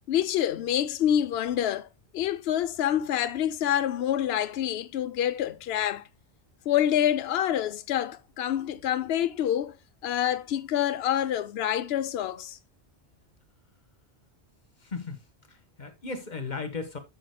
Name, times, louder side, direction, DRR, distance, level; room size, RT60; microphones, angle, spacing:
voice 1, 0.1-1.9 2.1-6.0 6.7-9.8 10.0-12.6, left 10 dB, 70° left, 0.9 m, -27 dB
voice 2, 14.8-17.0, left 4 dB, 40° left, 1.4 m, -36 dB
11.0 x 7.8 x 2.2 m
omnidirectional pair, 1.1 m